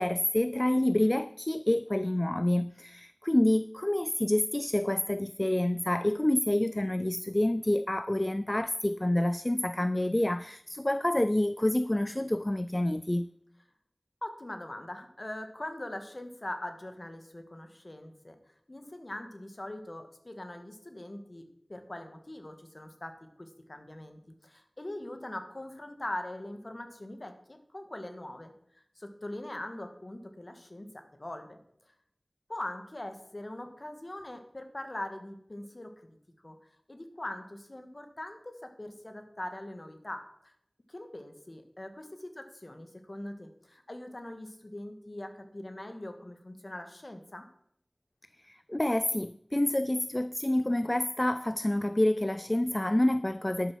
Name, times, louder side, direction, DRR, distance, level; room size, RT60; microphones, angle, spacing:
voice 1, 0.0-13.3 48.5-53.7, left 1 dB, 30° left, 0.3 m, -28 dB
voice 2, 14.2-18.4 18.7-21.4 21.7-28.5 29.0-31.6 32.5-36.2 36.4-36.6 36.9-40.5 40.9-47.5, left 1 dB, 45° left, 1.7 m, -42 dB
11.5 x 6.7 x 6.1 m
wide cardioid pair, 45°, 0 cm